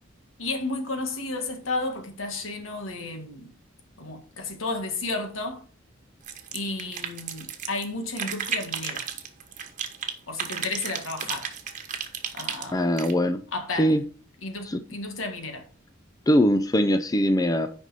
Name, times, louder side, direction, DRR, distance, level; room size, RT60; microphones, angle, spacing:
voice 1, 0.4-3.5 4.0-5.6 6.5-9.0 10.3-11.5 12.3-12.9 13.5-13.9 14.4-15.7, left 3 dB, 75° left, 1.7 m, -32 dB
sound 1, 6.2-7.8 8.2-10.1 10.4-13.1, right 7 dB, 40° right, 1.2 m, -33 dB
voice 2, 12.7-13.4 13.8-14.0 14.6-14.8 16.3-17.7, equal, 20° left, 0.5 m, -21 dB
9.1 x 5.3 x 4.1 m
head